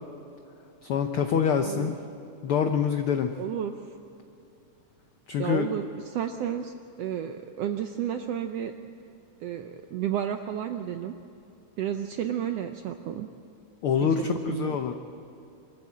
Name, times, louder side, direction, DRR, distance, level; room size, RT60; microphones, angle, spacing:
voice 1, 0.8-1.9 2.4-3.3 5.3-5.7 13.8-14.9, left 7 dB, 85° left, 6 dB, 1.2 m, -25 dB
voice 2, 3.4-3.8 5.4-6.7 7.0-8.7 9.4-11.1 11.8-13.3 14.2-14.8, right 9 dB, 80° right, 7 dB, 1.4 m, -32 dB
24.5 x 14.0 x 8.7 m, 2.8 s
omnidirectional pair, 3.6 m